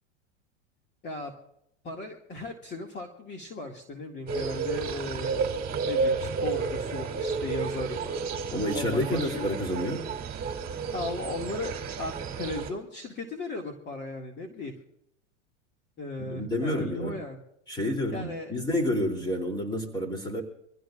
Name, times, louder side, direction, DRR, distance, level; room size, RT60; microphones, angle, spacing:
voice 1, 1.8-9.5 10.9-14.7 16.0-17.4 18.1-18.5, left 2 dB, 30° left, 2 dB, 2.2 m, -37 dB
sound 1, 4.3-12.7, right 5 dB, 25° right, 2.8 m, -31 dB
voice 2, 8.5-10.1 16.2-17.2 17.7-20.4, left 1 dB, 10° left, 4 dB, 3.1 m, -29 dB
25.5 x 15.5 x 2.5 m, 0.76 s
hypercardioid pair, 120°, 38 cm